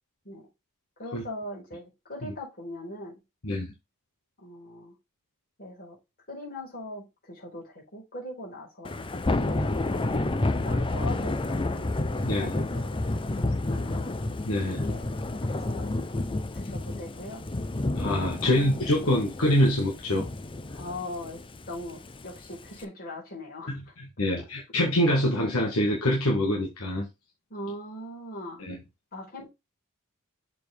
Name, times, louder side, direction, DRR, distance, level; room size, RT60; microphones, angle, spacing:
voice 1, 1.0-3.2 4.4-4.9 5.6-6.0 6.3-11.9 12.4-14.1 14.7-15.1 15.5-15.9 16.5-17.4 18.4-18.8 20.7-23.9 24.4-24.5 27.5-28.6 29.1-29.5, left 1 dB, 45° left, 4.6 m, -41 dB
Thunder / Rain, 8.8-22.8, left 2 dB, 25° left, 0.6 m, -30 dB
voice 2, 12.2-12.6 14.4-14.8 18.0-20.2 23.7-27.1 28.6-28.8, left 1 dB, 70° left, 1.8 m, -25 dB
6.9 x 4.8 x 3.5 m
head